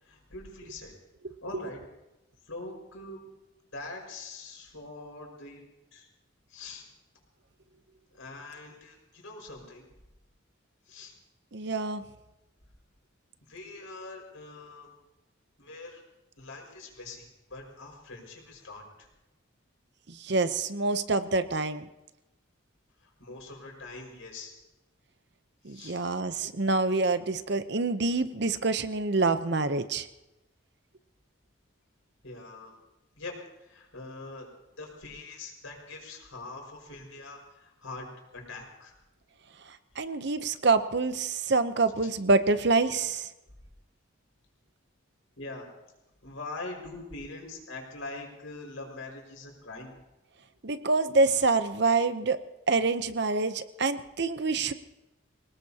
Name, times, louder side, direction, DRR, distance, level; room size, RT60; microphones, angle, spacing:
voice 1, 0.0-0.9 1.4-1.8 2.5-3.3 3.7-5.6 5.9-6.1 6.5-6.9 8.1-9.8 10.9-11.1 13.5-14.9 15.6-16.0 16.4-19.1 23.0-24.5 25.7-26.0 32.2-32.7 33.2-34.5 34.8-38.1 38.3-38.9 42.0-42.1 45.4-45.7 46.2-50.0, left 3 dB, 80° left, 0 dB, 5.4 m, -43 dB
voice 2, 11.5-12.0 20.1-21.9 25.6-30.1 40.0-43.3 50.6-52.4 52.7-54.7, right 3 dB, 55° right, 11 dB, 0.8 m, -26 dB
25.5 x 19.0 x 2.9 m, 0.97 s
head